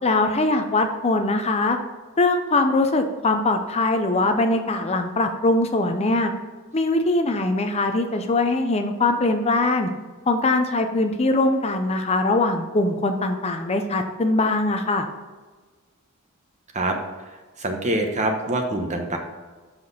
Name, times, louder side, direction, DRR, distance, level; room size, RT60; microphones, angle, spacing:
voice 1, 0.0-1.8 2.2-6.3 6.7-9.9 10.3-15.1, left 2 dB, 30° left, 6 dB, 0.6 m, -22 dB
voice 2, 17.6-19.2, right 1 dB, 35° right, 3 dB, 1.1 m, -24 dB
7.5 x 6.0 x 4.1 m, 1.4 s
head